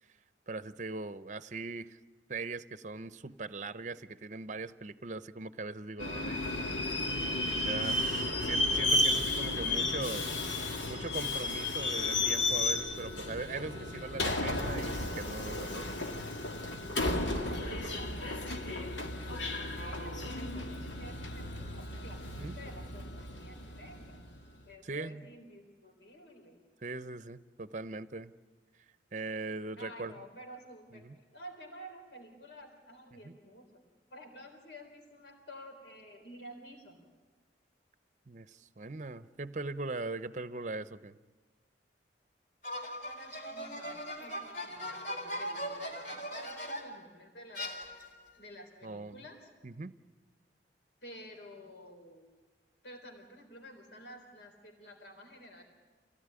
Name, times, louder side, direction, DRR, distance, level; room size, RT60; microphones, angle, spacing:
voice 1, 0.5-2.0 2.3-6.6 7.2-7.3 7.6-10.3 10.9-15.9 22.3-22.6 24.8-25.3 26.8-28.3 29.1-30.1 31.0-31.1 33.2-33.3 38.3-41.2 48.8-49.2 49.6-49.9, right 3 dB, 40° right, 14 dB, 0.7 m, -40 dB
Subway metro underground, 6.0-24.4, left 2 dB, 90° left, 2.3 m, -33 dB
voice 2, 17.3-24.2 24.6-26.6 29.7-31.1 31.3-33.8 34.1-37.0 43.1-47.8 48.4-49.5 51.0-52.2 52.8-55.6, equal, 70° left, 3 dB, 3.9 m, -51 dB
sound 1, 42.6-47.0 47.5-48.3, equal, 45° left, 4.0 m, -39 dB
27.0 x 17.5 x 9.7 m, 1.3 s
head